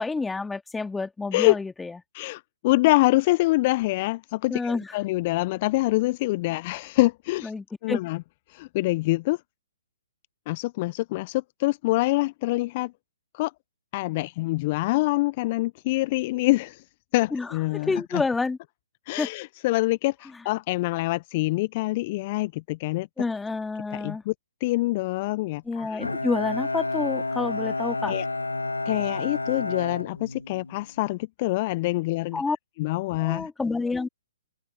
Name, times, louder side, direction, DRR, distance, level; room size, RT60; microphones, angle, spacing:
voice 1, 0.0-1.9 4.5-4.9 7.4-8.0 17.3-17.5 17.7-18.6 19.2-19.3 23.2-24.2 25.7-28.1 32.3-32.6 33.2-34.1, left 3 dB, 5° left, 2.3 m, -28 dB
voice 2, 2.1-7.5 7.8-8.2 8.5-9.4 10.5-12.9 13.3-13.5 13.9-16.8 17.1-18.2 19.1-23.1 23.9-24.3 24.6-26.1 28.0-28.3 28.9-32.4 32.8-33.5, left 20 dB, 35° left, 0.6 m, -25 dB
Bowed string instrument, 26.0-30.9, left 2 dB, 85° left, 2.7 m, -30 dB
open air
figure-of-eight pair, 125°, 0 cm